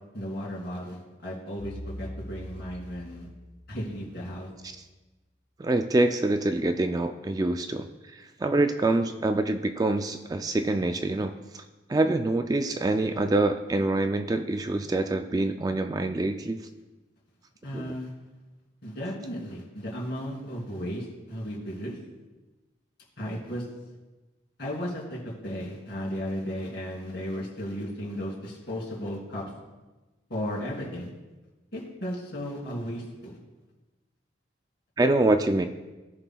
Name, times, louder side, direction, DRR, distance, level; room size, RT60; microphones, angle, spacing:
voice 1, 0.1-3.3 3.7-4.5 17.6-18.1 18.8-22.0 23.2-23.6 24.6-29.4 30.3-31.1 31.7-33.4, equal, 60° left, -4 dB, 3.0 m, -35 dB
sound 1, 1.6-4.1, left 1 dB, 85° left, 2.9 m, -42 dB
voice 2, 5.6-11.6 11.9-16.6 17.7-17.9 35.0-35.7, right 2 dB, 20° right, 7 dB, 0.3 m, -25 dB
17.5 x 5.9 x 2.3 m, 1.1 s
head